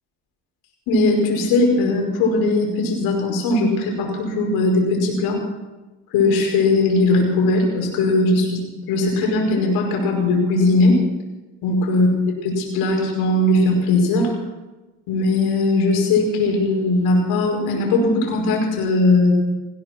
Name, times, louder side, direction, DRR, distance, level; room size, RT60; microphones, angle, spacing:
voice 1, 0.9-5.4 6.1-11.0 11.6-12.1 12.4-14.3 15.1-19.3, left 2 dB, 75° left, 0 dB, 5.3 m, -19 dB
19.0 x 16.0 x 4.5 m, 1.1 s
supercardioid pair, 95°, 37 cm